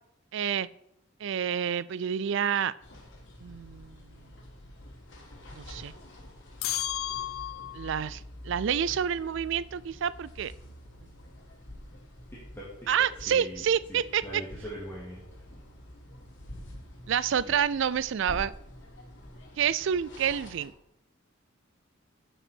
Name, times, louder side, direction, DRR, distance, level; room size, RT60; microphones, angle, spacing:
voice 1, 0.3-0.7 1.2-2.7 3.4-4.0 5.5-5.9 7.7-10.5 12.9-14.4 17.1-18.5 19.6-20.7, right 8 dB, 60° right, 20 dB, 0.4 m, -28 dB
sound 1, 2.8-20.7, left 1 dB, 60° left, 3.4 m, -47 dB
sound 2, 6.6-8.0, left 13 dB, 85° left, 0.5 m, -33 dB
voice 2, 12.3-12.7 13.3-15.2 17.4-17.5, equal, 10° left, -8 dB, 2.5 m, -42 dB
12.5 x 8.0 x 4.5 m, 0.82 s
head